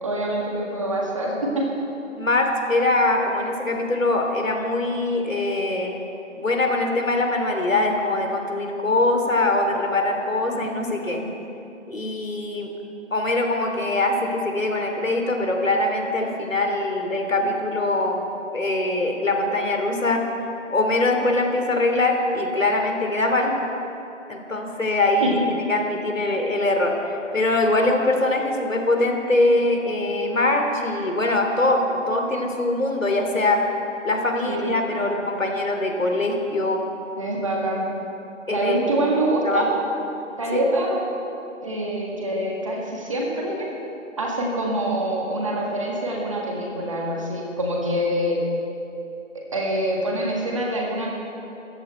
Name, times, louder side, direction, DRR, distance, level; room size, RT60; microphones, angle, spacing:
voice 1, 0.0-1.6 10.5-11.3 25.2-25.5 34.5-34.7 35.0-35.1 37.2-37.9 38.5-39.7 40.4-41.0 41.6-43.7 44.2-48.4 49.3-51.1, right 1 dB, 25° right, -2 dB, 1.8 m, -25 dB
voice 2, 2.2-6.0 6.4-11.2 11.9-12.7 13.1-20.2 20.7-23.6 24.3-25.4 25.7-33.6 34.0-36.8 38.5-39.1 39.4-39.6 40.5-40.6, left 2 dB, 75° left, 3 dB, 2.9 m, -23 dB
18.5 x 14.5 x 4.5 m, 2.8 s
figure-of-eight pair, 170°, 39 cm